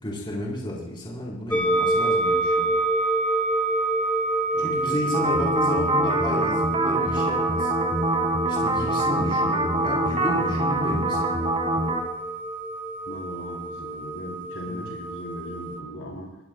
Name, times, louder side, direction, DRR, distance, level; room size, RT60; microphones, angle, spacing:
voice 1, 0.0-2.8 4.6-7.7 8.5-11.5 14.7-14.9, left 1 dB, 20° left, -4 dB, 4.1 m, -32 dB
sound 1, 1.5-15.8, right 2 dB, 5° left, 0.9 m, -27 dB
voice 2, 4.5-5.9 13.1-16.4, equal, 60° left, -3 dB, 3.6 m, -38 dB
sound 2, 5.1-12.0, right 1 dB, 25° right, 1.9 m, -25 dB
24.0 x 16.5 x 2.4 m, 0.95 s
head